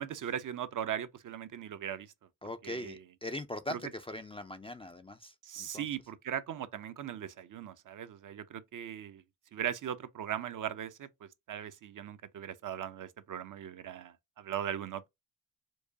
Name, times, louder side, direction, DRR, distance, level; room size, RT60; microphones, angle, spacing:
voice 1, 0.0-2.1 2.6-3.0 3.7-3.8 5.4-9.2 9.5-15.0, right 9 dB, 50° right, 0.5 m, -39 dB
voice 2, 2.4-5.9, left 1 dB, 15° left, 0.4 m, -41 dB
4.7 x 2.1 x 2.6 m
hypercardioid pair, 45°, 43 cm